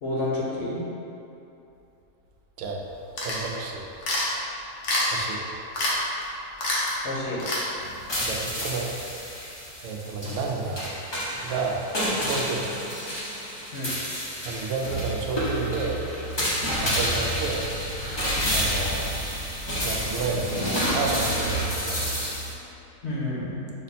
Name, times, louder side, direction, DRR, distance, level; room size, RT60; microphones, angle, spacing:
voice 1, 0.0-0.8 7.0-7.4 13.7-13.9 23.0-23.7, left 2 dB, 55° left, -6 dB, 1.0 m, -29 dB
sound 1, 3.2-3.5 4.0-4.3 4.8-5.3 5.7-6.0 6.2-6.3 6.6-6.9 7.4-7.7, left 1 dB, 90° left, 1.4 m, -26 dB
voice 2, 3.2-3.9 5.1-5.5 8.2-8.9 9.8-10.9 11.4-11.9 12.2-12.7 14.4-16.0 16.8-17.7 18.5-19.1 19.8-22.1, right 4 dB, 65° right, 0 dB, 0.8 m, -31 dB
sound 2, 7.8-22.5, equal, 30° left, 0.4 m, -29 dB
5.8 x 2.1 x 4.0 m, 2.8 s
omnidirectional pair, 1.6 m